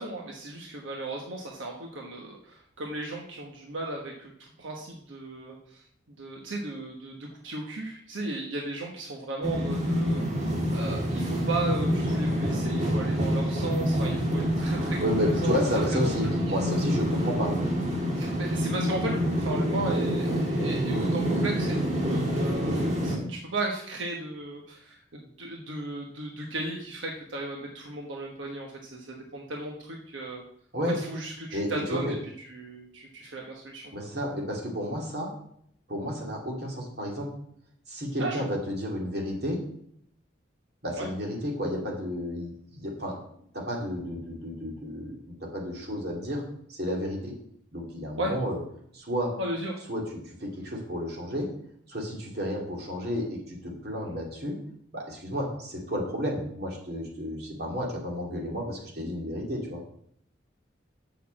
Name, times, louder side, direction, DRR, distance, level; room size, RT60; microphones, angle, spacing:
voice 1, 0.0-4.3 4.6-5.8 6.2-15.6 15.9-16.1 18.2-30.4 30.8-32.2 32.5-33.9 38.2-38.4 40.9-41.1 48.2-48.3 49.4-49.8, right 2 dB, 90° right, 0 dB, 1.3 m, -35 dB
sound 1, 9.4-23.2, equal, 35° right, 1.9 m, -27 dB
voice 2, 15.0-17.5 30.7-31.0 31.5-32.1 33.9-35.3 35.9-37.3 37.9-39.6 40.8-43.2 43.5-46.4 46.7-47.3 47.7-48.6 48.9-49.3 49.9-51.5 51.9-54.6 54.9-59.8, equal, 55° right, -1 dB, 2.7 m, -32 dB
6.7 x 6.3 x 7.5 m, 0.68 s
head